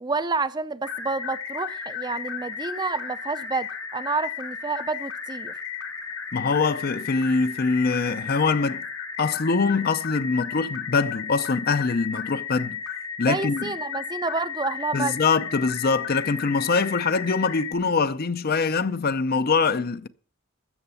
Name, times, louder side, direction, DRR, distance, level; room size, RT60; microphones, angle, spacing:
voice 1, 0.0-5.5 13.3-15.2, right 4 dB, 20° right, 0.5 m, -29 dB
sound 1, 0.8-17.7, left 7 dB, 75° left, 2.3 m, -34 dB
voice 2, 6.3-8.8 9.2-12.8 13.2-13.6 14.9-20.1, left 4 dB, 50° left, 0.6 m, -23 dB
13.0 x 7.8 x 6.9 m
head